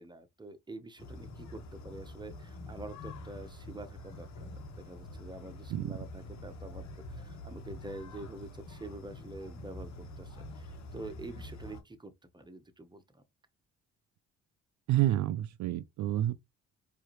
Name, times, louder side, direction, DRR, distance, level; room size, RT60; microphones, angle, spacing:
voice 1, 0.0-13.2, right 2 dB, 15° right, 1.1 m, -47 dB
sound 1, 1.0-11.8, left 1 dB, 65° left, 1.3 m, -46 dB
voice 2, 14.9-16.3, right 14 dB, 65° right, 0.5 m, -29 dB
4.7 x 2.8 x 3.1 m
supercardioid pair, 70°, 30 cm